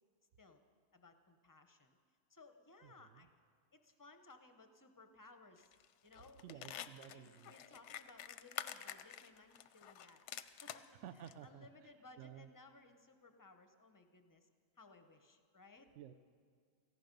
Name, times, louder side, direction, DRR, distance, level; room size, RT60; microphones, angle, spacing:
voice 1, 0.9-2.0 2.3-3.3 3.7-5.7 6.0-6.7 7.1-10.9 11.2-14.5 14.8-15.9, left 3 dB, 20° left, 7 dB, 0.5 m, -61 dB
voice 2, 2.8-3.3 6.4-7.5 11.0-12.5 16.0-16.1, right 9 dB, 65° right, 10 dB, 0.8 m, -54 dB
sound 1, 5.6-5.9 6.1-10.9 11.3-11.4, left 10 dB, 65° left, 0.8 m, -48 dB
17.5 x 15.0 x 5.2 m, 2.1 s
omnidirectional pair, 1.6 m